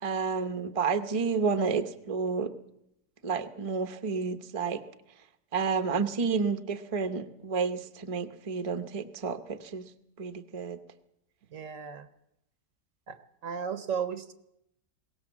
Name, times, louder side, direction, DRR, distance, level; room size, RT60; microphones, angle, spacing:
voice 1, 0.0-2.5 3.2-4.8 5.5-9.9 10.2-10.8, right 5 dB, 25° right, 9 dB, 0.8 m, -30 dB
voice 2, 11.5-12.1 13.1-14.3, right 7 dB, 55° right, 12 dB, 1.2 m, -35 dB
21.5 x 18.0 x 7.3 m, 0.81 s
omnidirectional pair, 1.8 m